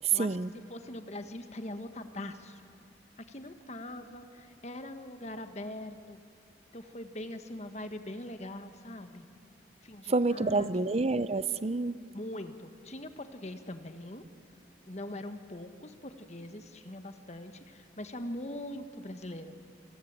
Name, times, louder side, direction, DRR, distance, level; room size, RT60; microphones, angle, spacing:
voice 1, 0.0-0.5 10.1-12.0, right 3 dB, 35° right, 15 dB, 0.6 m, -28 dB
voice 2, 0.7-2.6 3.2-6.2 6.7-9.3 9.8-10.7 12.1-14.2 14.9-19.5, left 1 dB, 40° left, 8 dB, 1.5 m, -42 dB
28.5 x 23.0 x 8.9 m, 2.4 s
head